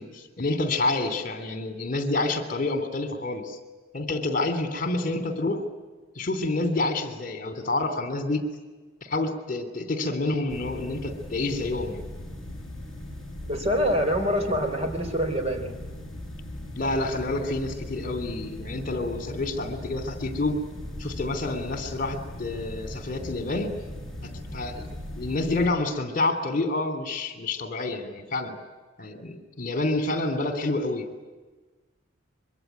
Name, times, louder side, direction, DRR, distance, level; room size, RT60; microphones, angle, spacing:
voice 1, 0.0-3.6 3.9-5.6 6.1-8.5 9.0-12.0 16.8-20.6 21.0-23.7 24.2-24.9 25.2-28.6 29.0-31.1, left 2 dB, 45° left, 8 dB, 3.0 m, -28 dB
sound 1, 10.5-25.7, left 1 dB, ahead, 7.1 m, -39 dB
voice 2, 13.4-15.8, equal, 30° right, 5 dB, 4.1 m, -25 dB
25.0 x 23.5 x 9.4 m, 1.3 s
head